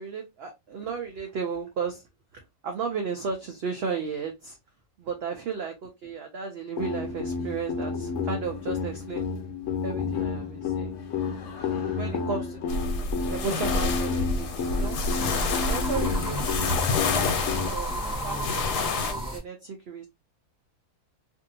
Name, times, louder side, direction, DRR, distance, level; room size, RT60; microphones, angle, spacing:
voice 1, 0.0-2.0 2.3-4.6 5.0-9.3 9.8-10.9 11.8-12.8 13.3-15.0 15.7-20.1, right 5 dB, 75° right, 3 dB, 0.5 m, -34 dB
sound 1, 6.8-17.7, left 5 dB, 60° left, 0.9 m, -31 dB
sound 2, 12.7-19.1, left 4 dB, 90° left, 1.2 m, -28 dB
sound 3, 14.3-19.4, right 1 dB, 5° right, 0.8 m, -34 dB
2.6 x 2.6 x 2.6 m, 0.22 s
omnidirectional pair, 1.7 m